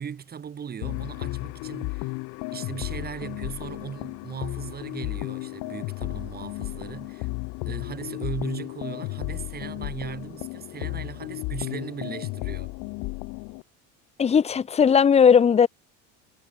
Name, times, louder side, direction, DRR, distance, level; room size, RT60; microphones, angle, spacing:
voice 1, 0.0-2.2 2.5-7.3 7.7-12.7, right 7 dB, 30° right, 2.3 m, -37 dB
sound 1, 0.8-13.6, left 27 dB, 65° left, 0.6 m, -34 dB
voice 2, 14.2-15.7, left 7 dB, 20° left, 0.5 m, -17 dB
cardioid pair, 115°, 32 cm